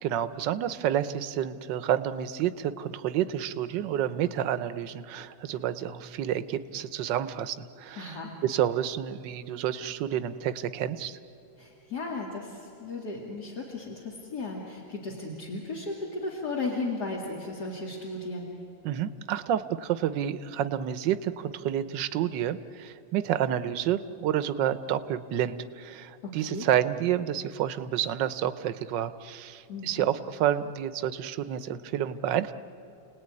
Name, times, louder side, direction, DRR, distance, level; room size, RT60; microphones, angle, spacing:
voice 1, 0.0-11.2 18.8-32.5, right 10 dB, 70° right, 13 dB, 1.5 m, -29 dB
voice 2, 8.0-8.3 11.6-18.6 26.2-26.7 29.7-30.1, left 3 dB, 55° left, -2 dB, 2.8 m, -35 dB
30.0 x 18.5 x 9.8 m, 2.9 s
omnidirectional pair, 2.1 m